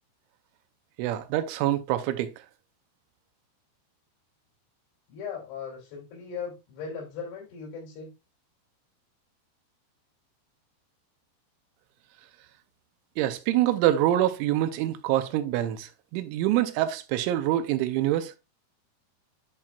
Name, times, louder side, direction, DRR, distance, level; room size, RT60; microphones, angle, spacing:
voice 1, 1.0-2.3 13.2-18.3, right 13 dB, 85° right, 3.1 m, -25 dB
voice 2, 5.1-8.1, left 6 dB, 85° left, 5.3 m, -38 dB
10.5 x 4.3 x 2.4 m
omnidirectional pair, 5.3 m